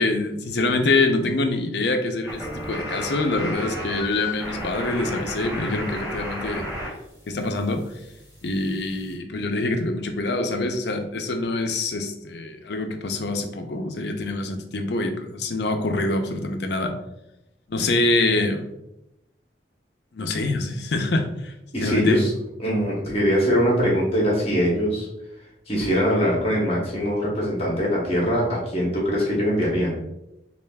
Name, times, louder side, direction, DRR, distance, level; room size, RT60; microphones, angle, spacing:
voice 1, 0.0-6.7 7.3-7.8 8.4-16.9 17.7-18.6 20.1-21.5 21.8-22.2, left 2 dB, 65° left, 5 dB, 0.5 m, -25 dB
sound 1, 2.2-6.9 7.2-9.1, left 1 dB, 15° right, 1.5 m, -33 dB
voice 2, 21.7-22.3 22.6-25.1 25.7-30.0, equal, 35° left, -3 dB, 1.0 m, -22 dB
6.5 x 2.4 x 2.3 m, 0.87 s
head